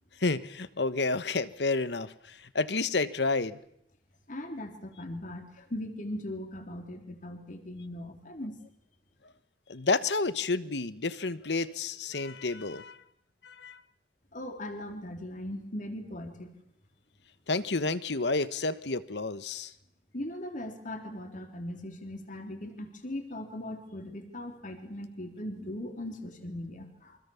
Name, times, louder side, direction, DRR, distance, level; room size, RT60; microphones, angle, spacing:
voice 1, 0.2-3.6 9.7-13.0 13.4-13.8 17.5-19.7, left 3 dB, 75° left, 15 dB, 1.3 m, -30 dB
voice 2, 4.3-8.6 14.3-16.5 20.1-27.2, left 1 dB, 50° left, 6 dB, 3.6 m, -39 dB
28.0 x 25.0 x 7.2 m, 0.72 s
head